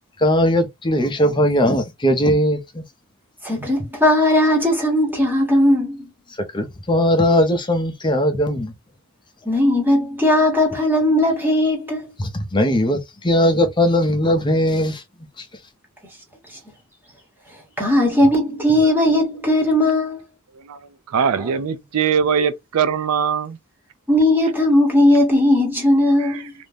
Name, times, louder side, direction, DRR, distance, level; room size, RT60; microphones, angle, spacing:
voice 1, 0.2-2.8 6.5-8.7 12.2-15.0 15.4-15.5, equal, 20° left, 0.5 m, -19 dB
voice 2, 3.4-6.1 9.5-12.0 17.8-20.2 21.4-21.5 24.1-26.5, left 1 dB, 10° right, 0.9 m, -17 dB
voice 3, 21.1-23.6, right 7 dB, 85° right, 0.4 m, -21 dB
2.5 x 2.1 x 3.2 m
head